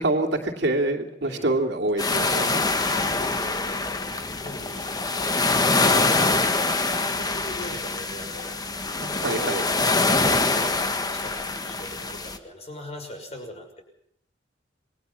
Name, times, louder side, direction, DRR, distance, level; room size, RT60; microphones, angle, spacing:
voice 1, 0.0-3.0 8.9-9.6, right 2 dB, 70° right, 3 dB, 2.7 m, -26 dB
voice 2, 1.2-1.6 2.3-4.9 5.5-9.6 10.1-13.8, left 1 dB, 35° left, 5 dB, 6.1 m, -40 dB
sound 1, 2.0-12.4, left 3 dB, 20° left, 1.4 m, -24 dB
27.5 x 21.5 x 5.7 m, 0.68 s
head